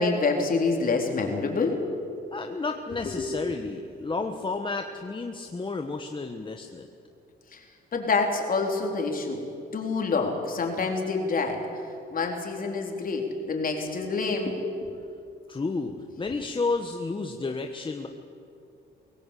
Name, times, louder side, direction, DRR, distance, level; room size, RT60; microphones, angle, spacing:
voice 1, 0.0-1.8 3.2-3.3 7.5-7.6 7.9-9.4 9.7-11.6 12.1-14.6, left 4 dB, 45° left, 2 dB, 4.0 m, -27 dB
voice 2, 2.3-6.9 15.5-18.1, left 3 dB, 25° left, 4 dB, 1.3 m, -31 dB
22.5 x 17.5 x 8.5 m, 2.5 s
cardioid pair, 90°, 20 cm